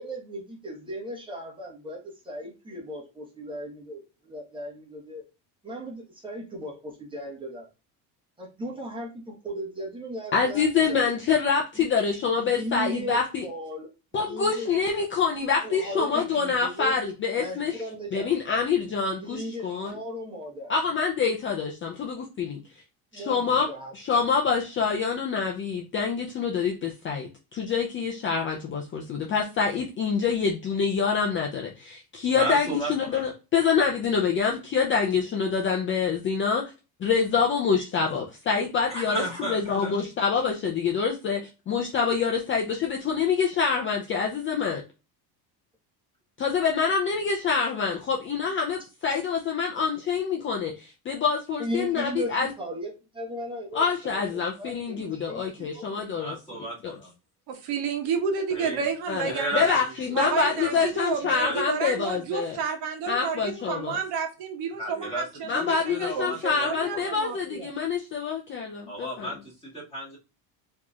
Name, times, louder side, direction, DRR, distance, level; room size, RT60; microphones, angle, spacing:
voice 1, 0.0-5.2 5.6-7.7 8.4-11.1 11.7-11.9 12.4-13.9 14.2-14.7 15.6-16.9 17.3-18.3 19.1-20.7 23.1-24.2 51.6-56.1, equal, 10° right, -1 dB, 1.1 m, -37 dB
voice 2, 10.3-13.5 14.1-17.8 18.1-19.9 20.7-22.6 23.1-23.7 23.9-36.6 37.0-39.2 39.5-44.8 46.4-52.5 53.7-56.9 59.1-62.6 63.1-64.0 65.5-69.3, left 5 dB, 30° left, 1 dB, 0.5 m, -26 dB
voice 3, 32.3-33.2 38.9-39.9 56.1-57.1 58.5-58.8 59.3-60.2 60.5-60.7 61.2-61.7 64.8-67.2 68.9-70.2, right 2 dB, 15° left, -5 dB, 2.0 m, -34 dB
voice 4, 57.5-59.7 60.1-67.7, right 6 dB, 60° right, 4 dB, 1.2 m, -31 dB
4.5 x 3.0 x 2.3 m, 0.29 s
cardioid pair, 160°, 43 cm